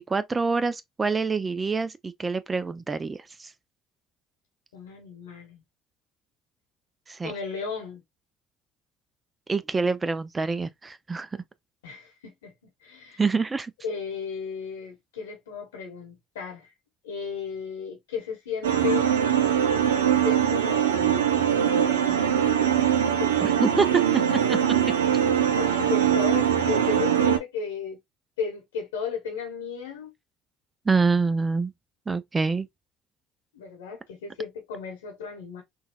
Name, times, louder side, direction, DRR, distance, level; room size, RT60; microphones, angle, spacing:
voice 1, 0.0-3.5 7.1-7.3 9.5-11.4 13.2-13.7 23.4-24.8 30.9-31.7 32.1-32.7, right 4 dB, 25° right, 0.4 m, -26 dB
voice 2, 4.7-5.6 7.2-8.0 11.8-12.5 12.8-13.2 13.8-16.7 17.0-19.1 20.2-23.5 25.6-28.0 28.4-30.1 33.5-35.6, left 6 dB, 85° left, 1.1 m, -34 dB
sound 1, 18.6-27.4, right 9 dB, 90° right, 0.4 m, -22 dB
3.9 x 2.3 x 2.3 m
hypercardioid pair, 65°, 0 cm